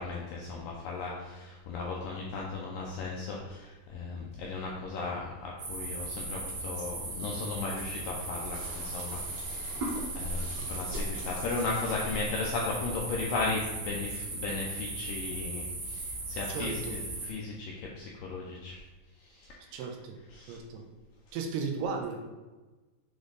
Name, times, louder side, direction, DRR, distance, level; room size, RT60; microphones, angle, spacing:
voice 1, 0.0-18.8 19.2-19.8 20.3-20.6, left 3 dB, 80° left, -3 dB, 2.0 m, -36 dB
sound 1, 5.6-17.3, right 2 dB, 55° right, 2.0 m, -37 dB
voice 2, 16.5-17.0 19.7-20.2 20.5-20.9 21.3-22.3, right 5 dB, 85° right, 3 dB, 2.7 m, -35 dB
7.8 x 3.4 x 4.0 m, 1.2 s
omnidirectional pair, 4.7 m